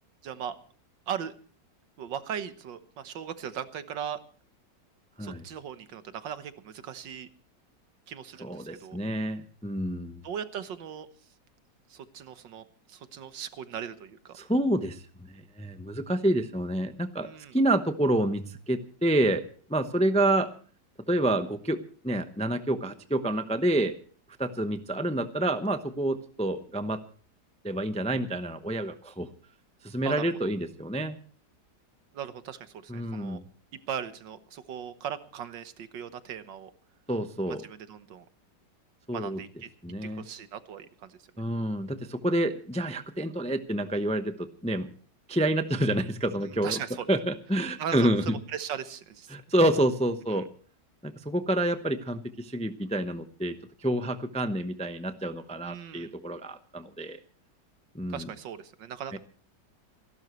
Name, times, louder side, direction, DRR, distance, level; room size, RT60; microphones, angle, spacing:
voice 1, 0.2-0.6 1.1-1.3 2.0-4.2 5.2-7.3 8.1-9.0 10.2-11.1 11.9-14.4 17.2-17.6 30.0-30.5 32.1-33.4 33.9-36.7 37.5-38.2 39.1-39.7 40.0-41.4 46.4-47.1 47.8-49.4 50.3-50.4 55.6-56.1 58.1-59.2, right 8 dB, 90° right, 11 dB, 1.8 m, -38 dB
voice 2, 8.4-10.2 14.4-20.5 21.1-24.0 24.4-27.0 27.6-29.3 29.8-31.2 32.9-33.5 37.1-37.6 39.1-39.4 39.8-40.2 41.4-44.9 45.3-46.8 47.1-48.2 49.3-50.5 51.0-57.2 57.9-58.3 59.1-59.2, right 1 dB, 10° left, 9 dB, 0.4 m, -28 dB
28.0 x 12.0 x 3.1 m, 0.43 s
omnidirectional pair, 1.9 m